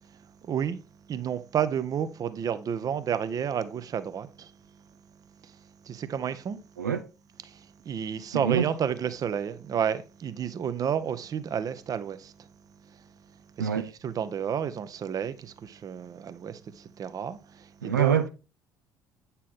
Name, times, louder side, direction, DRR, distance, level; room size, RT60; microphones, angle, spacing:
voice 1, 0.4-0.8 1.1-4.5 5.4-5.6 5.8-6.6 7.4-12.5 12.9-13.0 13.6-18.2, right 8 dB, 40° right, 0.7 m, -31 dB
voice 2, 8.3-8.7 13.6-13.9 17.8-18.3, right 8 dB, 80° right, 0.4 m, -25 dB
8.4 x 4.5 x 3.6 m
figure-of-eight pair, 50°, 10 cm